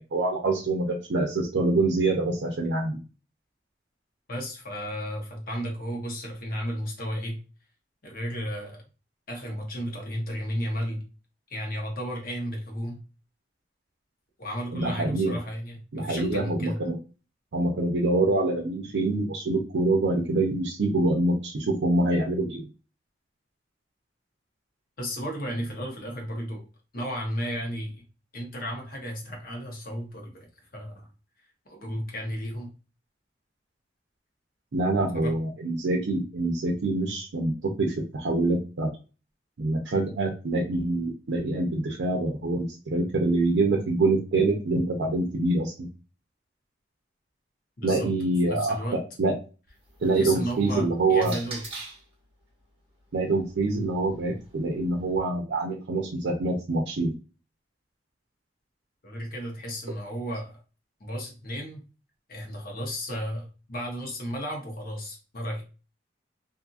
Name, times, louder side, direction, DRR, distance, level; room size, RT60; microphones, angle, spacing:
voice 1, 0.1-3.0 14.7-15.4 15.9-17.0 17.5-22.7 34.7-38.9 39.6-45.9 47.8-49.3 50.0-51.4 53.1-57.1, right 2 dB, 85° right, 1 dB, 0.5 m, -25 dB
voice 2, 4.3-7.4 8.0-8.8 9.3-11.0 11.5-13.0 14.4-16.8 25.0-26.6 26.9-27.9 28.3-30.5 30.7-31.1 31.7-32.7 35.1-35.4 47.8-48.1 48.5-49.0 50.2-51.6 59.0-60.6 61.0-61.8 62.3-65.6, equal, 55° left, 1 dB, 1.0 m, -33 dB
sound 1, 49.7-52.1 53.1-55.2, right 3 dB, 35° right, 1.0 m, -45 dB
2.7 x 2.6 x 2.4 m, 0.33 s
head